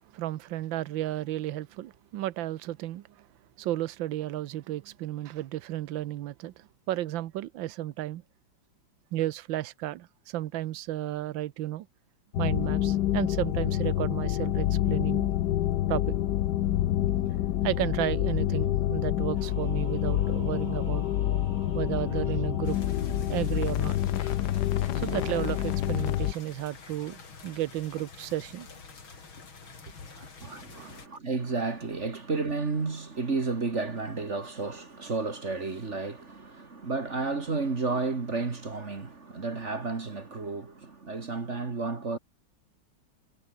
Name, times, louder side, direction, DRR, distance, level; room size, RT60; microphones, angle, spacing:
voice 1, 0.1-3.3 3.6-8.2 9.1-11.9 12.4-15.3 15.9-16.1 17.6-21.0 21.7-22.9 23.3-24.0 24.9-28.7 30.1-30.3 30.8-30.9, right 14 dB, 75° right, 1.5 m, -33 dB
sound 1, 12.3-26.3, left 13 dB, 65° left, 1.2 m, -27 dB
Singing / Musical instrument, 19.4-23.4, right 1 dB, 20° right, 6.1 m, -48 dB
sound 2, 22.7-31.1, left 4 dB, 80° left, 4.3 m, -44 dB
voice 2, 30.4-42.2, right 3 dB, 35° right, 2.1 m, -32 dB
omnidirectional pair, 2.2 m